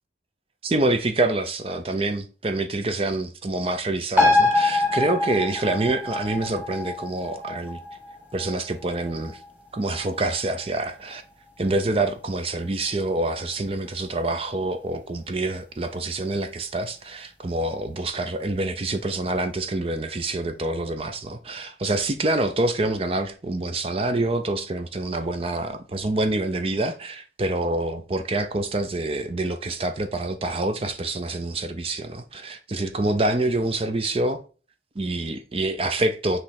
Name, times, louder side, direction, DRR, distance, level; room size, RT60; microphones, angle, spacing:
voice 1, 0.6-7.8 8.3-9.4 9.7-11.2 11.6-34.4 35.0-36.4, right 2 dB, 30° right, 0.5 m, -26 dB
sound 1, 4.2-11.1 11.5-11.6, left 2 dB, 10° right, 1.3 m, -25 dB
7.6 x 3.1 x 4.2 m
head